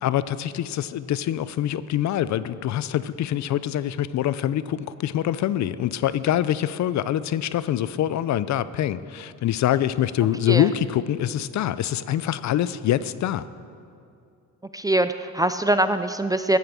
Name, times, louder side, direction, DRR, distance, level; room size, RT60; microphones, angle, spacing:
voice 1, 0.0-13.5, left 11 dB, 60° left, 16 dB, 0.5 m, -25 dB
voice 2, 14.7-16.6, right 1 dB, 10° right, 10 dB, 0.4 m, -22 dB
14.5 x 9.5 x 6.9 m, 2.4 s
cardioid pair, 145°, 32 cm